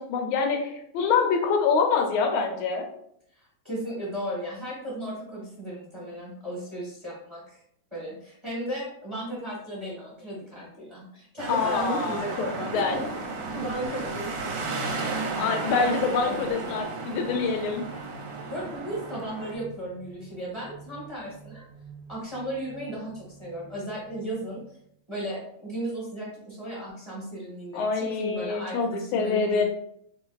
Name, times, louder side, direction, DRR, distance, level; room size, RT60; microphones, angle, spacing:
voice 1, 0.0-2.9 11.5-12.3 12.6-13.0 15.4-17.8 27.7-29.6, left 5 dB, 90° left, 4 dB, 1.5 m, -25 dB
voice 2, 3.3-7.6 7.9-13.1 13.5-14.6 15.7-16.5 18.5-21.7 22.1-24.6 25.1-29.6, right 1 dB, 20° right, -6 dB, 1.0 m, -35 dB
sound 1, 11.4-19.5, right 3 dB, 70° right, 1.2 m, -34 dB
sound 2, 17.0-24.9, right 6 dB, 25° left, 1.4 m, -49 dB
4.7 x 3.0 x 2.3 m, 0.71 s
omnidirectional pair, 2.2 m